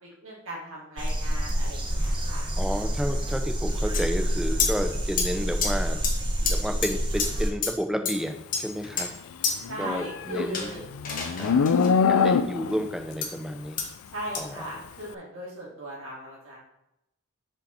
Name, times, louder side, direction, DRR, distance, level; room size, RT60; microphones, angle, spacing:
voice 1, 0.0-2.4 9.7-10.8 12.2-12.6 14.1-16.6, right 1 dB, 75° right, -5 dB, 2.2 m, -38 dB
sound 1, 1.0-7.5, equal, 20° right, 1.0 m, -27 dB
voice 2, 2.6-6.0 6.4-9.2 9.8-10.8 11.4-11.8 12.1-13.8 14.4-14.7, equal, ahead, 6 dB, 0.5 m, -31 dB
sound 2, 3.9-4.0 4.6-4.7 5.2-5.3 5.6-5.7 6.0-6.1 6.5-6.6 6.8-6.9 7.2-7.3 7.6-7.7 8.0-8.1 8.5-9.1 9.4-9.5 10.5-11.9 13.2-13.3 13.8-13.9 14.3-14.4, left 5 dB, 40° left, 1.2 m, -27 dB
Livestock farm animals working animals, 9.6-12.9, left 5 dB, 85° left, 0.4 m, -23 dB
6.3 x 5.2 x 4.2 m, 0.85 s
head